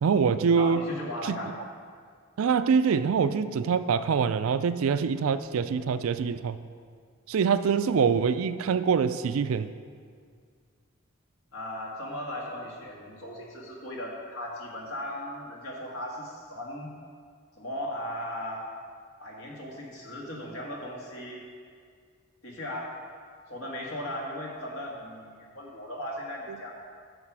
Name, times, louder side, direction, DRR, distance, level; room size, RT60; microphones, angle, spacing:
voice 1, 0.0-0.8 1.3-1.4 2.4-6.6 7.3-9.7, right 6 dB, 75° right, 12 dB, 0.4 m, -24 dB
voice 2, 0.6-1.6 11.5-16.9 17.6-18.7 19.2-21.4 22.4-23.0 23.5-26.7, left 1 dB, 75° left, -2 dB, 1.7 m, -37 dB
9.9 x 6.6 x 4.8 m, 2.1 s
head